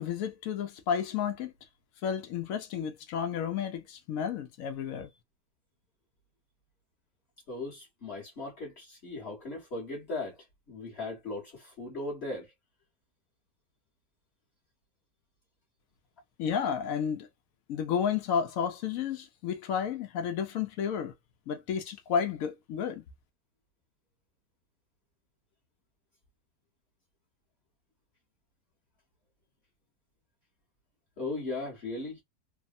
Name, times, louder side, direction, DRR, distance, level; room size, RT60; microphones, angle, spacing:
voice 1, 0.0-1.5 2.0-5.1 16.4-17.3 17.7-21.1 21.5-23.0, left 7 dB, 70° left, 0.8 m, -31 dB
voice 2, 7.5-10.4 10.7-12.5 31.2-32.2, left 2 dB, 40° left, 1.3 m, -37 dB
3.3 x 2.0 x 2.6 m
omnidirectional pair, 2.0 m